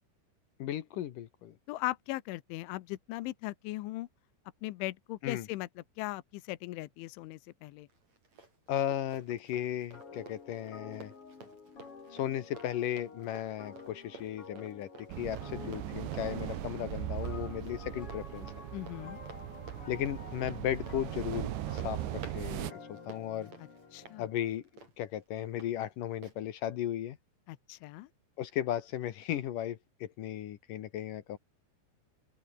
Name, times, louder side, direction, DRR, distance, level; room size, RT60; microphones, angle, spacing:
voice 1, 0.6-1.5 5.2-5.5 8.7-11.1 12.1-14.9 15.2-18.5 19.9-23.5 24.2-24.6 25.0-27.2 28.4-31.4, left 11 dB, 70° left, 2.2 m, -35 dB
voice 2, 1.7-4.1 4.6-7.9 18.7-19.2 23.9-24.3 27.5-28.1, left 18 dB, 85° left, 3.4 m, -38 dB
Run, 7.9-25.7 26.2-26.4, right 3 dB, 35° right, 7.3 m, -54 dB
sound 1, 9.9-24.5, left 5 dB, 30° left, 4.1 m, -50 dB
sound 2, 15.1-22.7, right 14 dB, 75° right, 3.5 m, -39 dB
open air
omnidirectional pair, 5.4 m